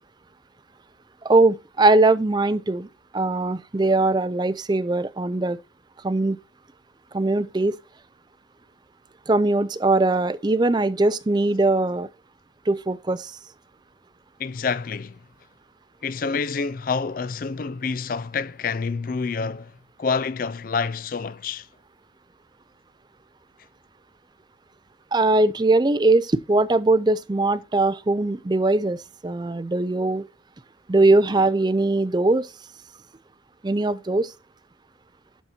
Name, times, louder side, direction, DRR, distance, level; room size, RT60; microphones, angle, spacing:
voice 1, 1.2-2.9 3.1-5.6 6.0-6.4 7.1-7.8 9.3-12.1 12.7-13.3 25.1-30.2 30.9-32.5 33.6-34.3, right 2 dB, 20° right, 0.4 m, -21 dB
voice 2, 14.4-15.2 16.0-19.7 20.0-21.7, left 5 dB, 45° left, 0.4 m, -27 dB
11.5 x 4.2 x 4.3 m
head